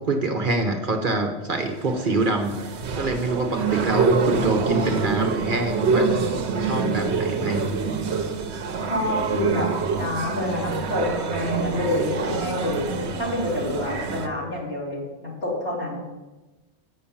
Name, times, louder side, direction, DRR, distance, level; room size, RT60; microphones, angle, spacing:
voice 1, 0.0-6.3 6.6-7.7, right 2 dB, 50° right, 5 dB, 1.1 m, -25 dB
sound 1, 1.5-14.3, right 5 dB, 75° right, 1.1 m, -26 dB
voice 2, 3.9-5.0 8.8-9.7 10.0-12.8 13.2-16.0, left 1 dB, 60° left, -5 dB, 3.4 m, -28 dB
8.5 x 6.4 x 7.0 m, 1.1 s
omnidirectional pair, 1.1 m